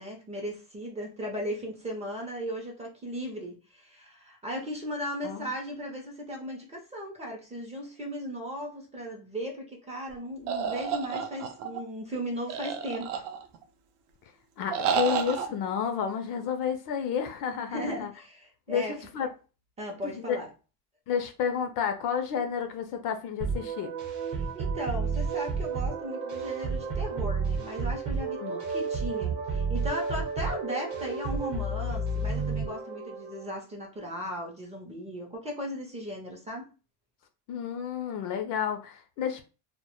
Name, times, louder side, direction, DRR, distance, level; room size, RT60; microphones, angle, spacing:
voice 1, 0.0-13.2 17.7-18.9 19.8-20.5 24.3-36.7, equal, 15° right, 0.4 m, -37 dB
sound 1, 10.5-11.8 12.5-13.6 14.7-15.5, right 7 dB, 75° right, 0.6 m, -30 dB
voice 2, 14.6-18.1 18.7-19.3 20.1-20.4 21.1-23.9 28.4-28.6 37.5-39.4, left 7 dB, 50° left, 0.4 m, -31 dB
sound 2, 23.4-33.5, right 4 dB, 40° right, 0.8 m, -31 dB
2.1 x 2.0 x 2.9 m
cardioid pair, 135°, 42 cm